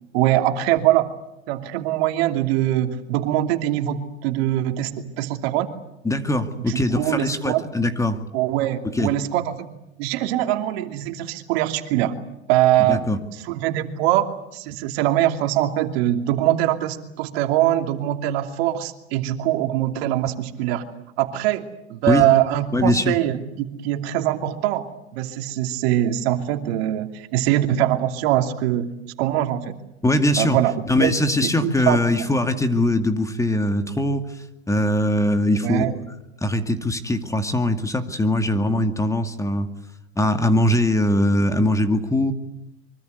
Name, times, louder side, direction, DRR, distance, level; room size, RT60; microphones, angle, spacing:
voice 1, 0.1-1.1 1.5-5.7 6.7-7.6 8.3-9.7 10.0-12.2 12.5-13.1 13.4-20.8 21.2-28.9 29.2-29.8 30.4-30.7 31.0-31.1 31.6-32.3 35.6-35.9, right 13 dB, 65° right, 6 dB, 2.9 m, -22 dB
voice 2, 6.0-8.2 8.9-9.1 12.8-13.2 22.1-22.3 22.7-23.2 30.0-30.6 30.9-34.2 34.7-35.8 36.4-39.7 40.2-42.3, left 1 dB, 10° left, 7 dB, 2.2 m, -21 dB
24.5 x 24.5 x 8.1 m, 0.88 s
hypercardioid pair, 105°, 33 cm